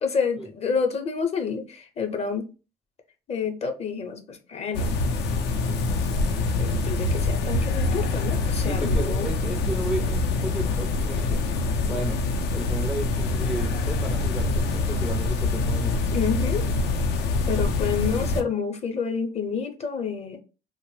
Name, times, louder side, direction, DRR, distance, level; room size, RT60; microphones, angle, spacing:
voice 1, 0.0-2.5 3.3-5.0 6.6-9.3 16.1-16.6 17.5-20.4, left 6 dB, 40° left, 0.6 m, -28 dB
sound 1, 4.7-18.4, left 3 dB, 80° left, 0.5 m, -25 dB
voice 2, 8.4-11.4 11.9-12.2 12.5-16.0, right 1 dB, ahead, 0.4 m, -33 dB
2.8 x 2.0 x 3.1 m
cardioid pair, 110°, 17 cm